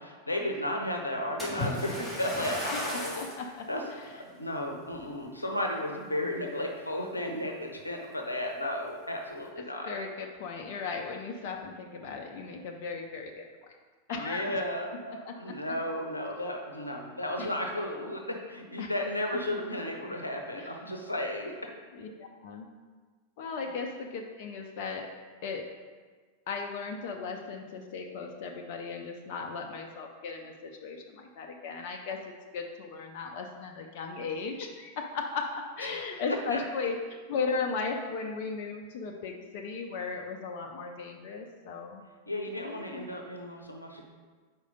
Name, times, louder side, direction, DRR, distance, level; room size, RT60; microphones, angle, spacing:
voice 1, 0.0-3.2 3.7-10.0 14.1-21.5 35.9-36.1 36.5-36.6 42.3-44.0, left 1 dB, 85° left, 2 dB, 0.8 m, -34 dB
Splash splatter, 1.4-3.4 4.1-4.3 4.9-5.0, left 1 dB, 5° right, 2.0 m, -35 dB
voice 2, 3.1-4.1 9.9-13.4 14.1-14.4 15.3-15.4 17.4-17.5 18.8-18.9 20.6-20.7 21.9-22.7 23.4-25.1 25.4-25.7 26.5-32.2 32.5-42.0 42.5-43.0, left 4 dB, 50° left, 2 dB, 0.5 m, -36 dB
4.8 x 4.4 x 5.3 m, 1.5 s
figure-of-eight pair, 90°, 0 cm